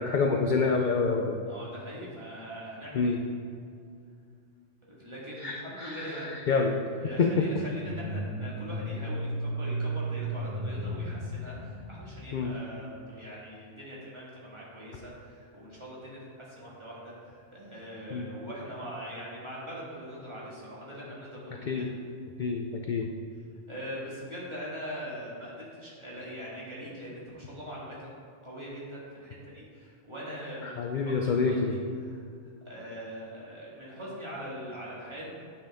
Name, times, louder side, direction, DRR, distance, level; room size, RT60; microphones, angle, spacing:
voice 1, 0.0-1.4 2.9-3.2 5.4-6.8 7.2-7.5 12.3-12.5 18.1-18.3 21.7-21.9 22.4-23.1 30.6-31.8, left 4 dB, 60° left, 3 dB, 0.5 m, -27 dB
voice 2, 1.5-3.2 4.9-6.3 7.0-21.9 23.7-28.1 28.4-32.2 32.6-35.3, equal, 20° right, -7 dB, 2.0 m, -42 dB
sound 1, 7.6-12.3, right 1 dB, 40° right, 0.8 m, -34 dB
9.1 x 5.6 x 3.7 m, 2.3 s
omnidirectional pair, 1.3 m